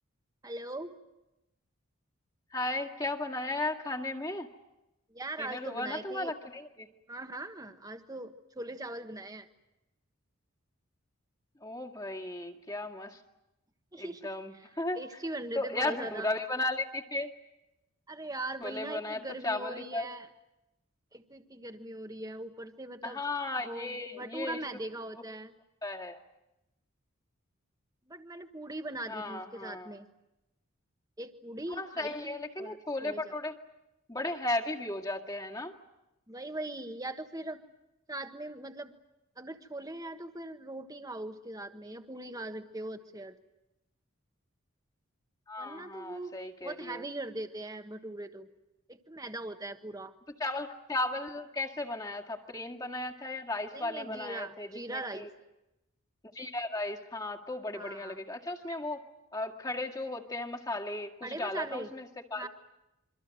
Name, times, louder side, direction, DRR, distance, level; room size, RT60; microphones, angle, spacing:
voice 1, 0.4-1.0 5.1-6.3 7.1-9.5 13.9-14.7 15.0-16.3 18.1-20.3 21.1-23.2 23.6-25.5 28.1-30.1 31.2-33.3 36.3-37.6 38.1-38.9 39.4-43.4 45.6-46.3 46.6-48.5 48.9-50.1 53.7-55.3 57.7-58.2 61.2-61.9 62.3-62.5, right 2 dB, 15° right, 7 dB, 1.4 m, -40 dB
voice 2, 2.5-4.5 5.4-6.9 11.6-13.2 14.0-15.0 15.6-17.3 18.6-20.1 23.0-24.6 25.2-25.3 25.8-26.2 29.0-29.9 31.7-33.6 34.1-35.7 45.5-47.0 50.4-55.3 56.3-59.0 59.3-62.5, left 2 dB, 20° left, 2 dB, 2.0 m, -35 dB
27.0 x 24.5 x 7.7 m, 0.93 s
head